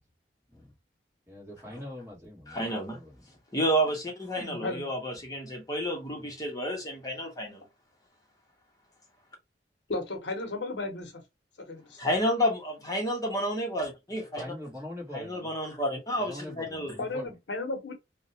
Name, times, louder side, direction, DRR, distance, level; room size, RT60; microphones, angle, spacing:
voice 1, 1.3-3.2 14.4-15.5 16.2-17.3, left 1 dB, 15° right, 1.4 m, -42 dB
voice 2, 2.5-3.0 3.5-7.6 12.0-14.4 15.1-16.9, equal, 20° left, 0.8 m, -30 dB
voice 3, 4.4-4.9 9.9-11.2 11.7-12.0 17.0-17.9, left 2 dB, 80° left, 0.8 m, -34 dB
2.7 x 2.1 x 2.6 m
head